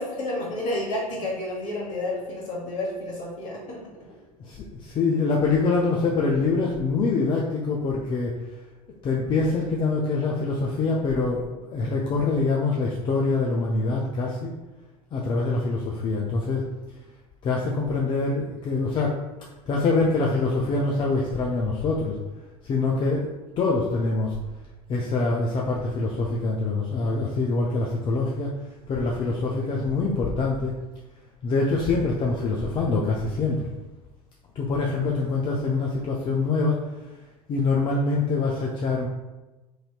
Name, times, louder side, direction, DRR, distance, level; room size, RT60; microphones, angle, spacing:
voice 1, 0.0-3.8, left 1 dB, 45° left, -4 dB, 1.3 m, -30 dB
voice 2, 4.4-8.4 9.0-14.5 15.1-16.7 17.4-22.2 22.6-24.3 24.9-30.7 31.4-33.6 34.6-36.8 37.5-39.1, left 3 dB, 25° left, -2 dB, 0.4 m, -25 dB
3.1 x 2.6 x 2.4 m, 1.1 s
figure-of-eight pair, 70°, 19 cm